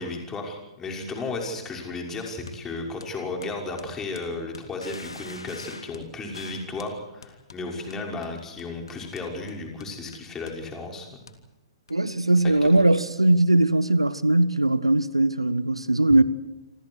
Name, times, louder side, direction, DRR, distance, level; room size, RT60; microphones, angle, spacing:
voice 1, 0.0-11.3 12.4-12.8, left 3 dB, 15° left, 6.1 m, -34 dB
sound 1, 2.5-2.6 3.0-6.1 6.4-6.5 6.8-7.0 7.2-10.7 11.3-11.4 11.9-12.0 12.4-12.5 12.8-12.9 13.1-13.8, left 5 dB, 65° left, 3.2 m, -49 dB
sound 2, 4.8-6.0 6.3-6.7, left 2 dB, 80° left, 3.1 m, -42 dB
voice 2, 11.9-16.2, right 2 dB, 85° right, 1.5 m, -20 dB
28.0 x 27.0 x 4.8 m
figure-of-eight pair, 115°, 3 cm